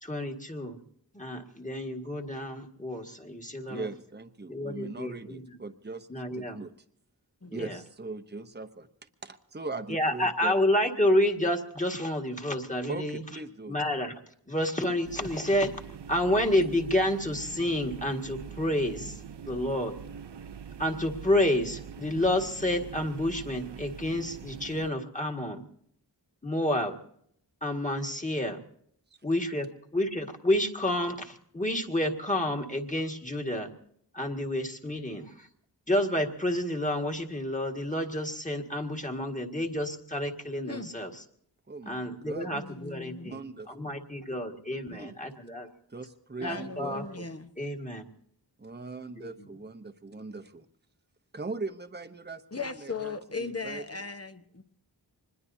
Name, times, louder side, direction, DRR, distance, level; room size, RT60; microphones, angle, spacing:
voice 1, 0.0-0.8 1.1-3.9 4.5-5.4 6.1-6.6 7.5-7.8 9.9-13.2 13.7-14.1 14.5-15.7 16.1-20.0 20.8-25.6 26.4-27.0 27.6-28.6 29.2-33.7 34.1-35.5 35.9-41.2 41.9-45.7 46.4-47.3 47.6-48.1 49.2-49.5, left 1 dB, 15° left, 2 dB, 1.9 m, -29 dB
voice 2, 3.7-6.1 6.3-6.7 7.5-8.9 9.2-10.5 12.9-13.7 41.7-42.6 43.2-43.9 44.9-45.2 45.9-47.0 48.6-50.6 51.3-54.0, right 3 dB, 25° right, 7 dB, 0.9 m, -40 dB
voice 3, 7.4-7.7 40.7-40.9 42.5-43.3 46.4-47.5 52.5-54.6, left 4 dB, 35° left, 8 dB, 1.1 m, -38 dB
sound 1, 15.0-24.9, right 7 dB, 70° right, 0.6 m, -43 dB
25.5 x 21.0 x 2.7 m, 0.68 s
wide cardioid pair, 45°, 43 cm